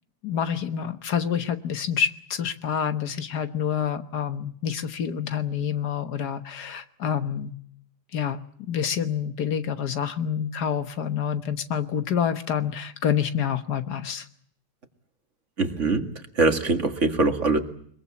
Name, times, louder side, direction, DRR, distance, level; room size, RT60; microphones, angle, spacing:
voice 1, 0.2-7.5 8.1-8.4 8.7-14.3, left 8 dB, 70° left, 10 dB, 1.8 m, -27 dB
voice 2, 15.6-16.0 16.4-17.6, right 3 dB, 45° right, 6 dB, 2.2 m, -22 dB
22.5 x 22.0 x 8.4 m, 0.62 s
omnidirectional pair, 1.8 m